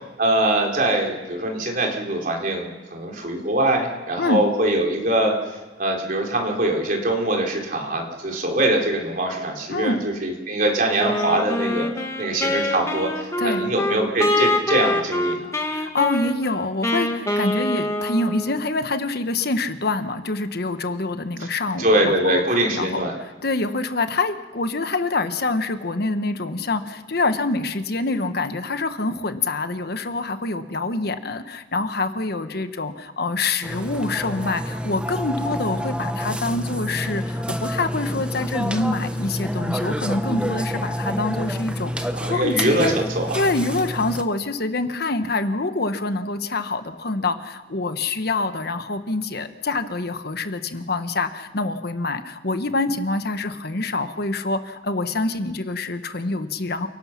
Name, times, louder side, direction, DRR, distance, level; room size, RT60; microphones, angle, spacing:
voice 1, 0.2-11.9 12.2-15.4 21.8-23.1 42.1-43.4, right 1 dB, 45° right, 1 dB, 3.7 m, -23 dB
voice 2, 9.7-10.0 13.4-13.7 15.7-22.4 22.7-23.1 23.4-43.0 43.3-56.9, left 3 dB, 55° left, 9 dB, 1.2 m, -26 dB
Wind instrument woodwind instrument, 11.0-18.7, left 1 dB, 15° left, 1.6 m, -25 dB
Burping eructation, 33.6-44.2, equal, 5° right, 0.9 m, -28 dB
29.0 x 19.0 x 5.9 m, 1.2 s
head